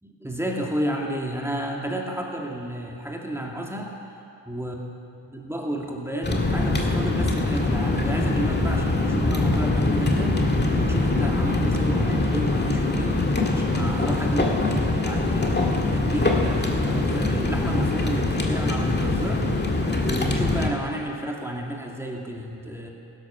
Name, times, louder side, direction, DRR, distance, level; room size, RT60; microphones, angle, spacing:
voice 1, 0.0-4.0 4.4-4.8 5.3-10.4 10.7-13.2 13.5-19.4 20.0-22.9, right 1 dB, 5° right, -1 dB, 2.4 m, -31 dB
sound 1, 6.2-20.7, left 2 dB, 25° left, 2.1 m, -23 dB
16.0 x 12.5 x 5.9 m, 2.8 s
cardioid pair, 70°, 43 cm